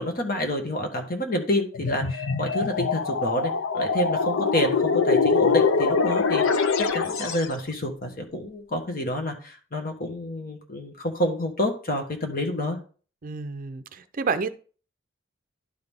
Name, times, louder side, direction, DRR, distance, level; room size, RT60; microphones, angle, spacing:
voice 1, 0.0-12.8, left 1 dB, 45° left, 4 dB, 1.4 m, -28 dB
sound 1, 1.7-7.5, left 5 dB, 80° left, 0.6 m, -23 dB
voice 2, 13.2-14.5, right 5 dB, 45° right, 11 dB, 0.5 m, -29 dB
11.5 x 3.9 x 3.6 m, 0.40 s
head